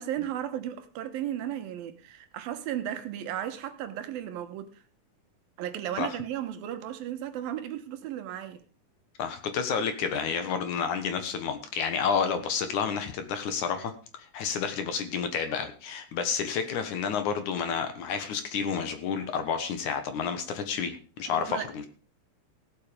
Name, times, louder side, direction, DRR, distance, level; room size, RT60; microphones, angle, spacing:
voice 1, 0.0-4.8 5.6-8.6 21.3-21.7, right 11 dB, 80° right, 2.9 m, -35 dB
voice 2, 9.2-13.9 14.3-21.9, left 6 dB, 65° left, 2.5 m, -30 dB
17.0 x 7.9 x 5.1 m
omnidirectional pair, 4.2 m